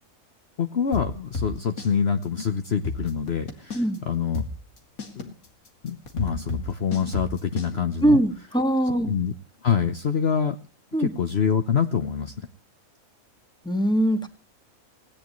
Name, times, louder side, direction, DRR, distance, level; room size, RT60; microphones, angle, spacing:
voice 1, 0.6-4.4 5.2-5.3 5.8-8.2 9.1-9.3 9.6-10.6 11.0-12.3, left 7 dB, 50° left, 7 dB, 1.1 m, -25 dB
sound 1, 0.9-1.9 2.2-2.3 2.7-4.0 4.3-7.7, left 3 dB, 85° left, 3.0 m, -31 dB
voice 2, 8.0-9.1 10.9-11.1 13.6-14.3, right 1 dB, 5° left, 6 dB, 1.9 m, -22 dB
19.0 x 17.5 x 3.1 m, 0.36 s
omnidirectional pair, 1.5 m